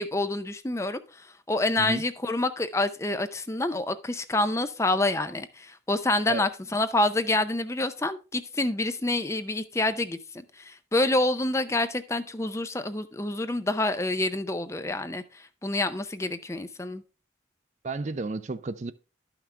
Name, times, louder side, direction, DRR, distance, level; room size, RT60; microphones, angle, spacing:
voice 1, 0.0-17.0, left 2 dB, 15° left, 0.5 m, -27 dB
voice 2, 17.8-18.9, right 3 dB, 40° right, 0.4 m, -32 dB
12.0 x 5.9 x 3.3 m
head